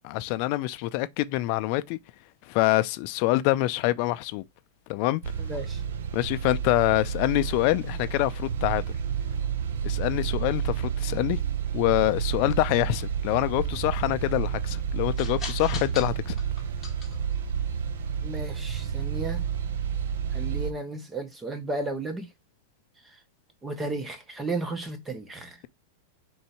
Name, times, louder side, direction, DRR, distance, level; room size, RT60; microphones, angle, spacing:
voice 1, 0.0-2.0 2.5-4.4 4.9-5.2 6.1-8.8 9.8-11.4 11.7-16.4, left 18 dB, 45° left, 0.4 m, -25 dB
sound 1, 5.2-20.7, right 8 dB, 75° right, 0.6 m, -30 dB
sound 2, 13.1-20.5, left 5 dB, 15° left, 1.5 m, -44 dB
voice 2, 18.2-19.4 20.3-22.3 23.6-25.5, right 2 dB, 10° right, 0.7 m, -33 dB
3.9 x 2.7 x 4.3 m
supercardioid pair, 150°, 0 cm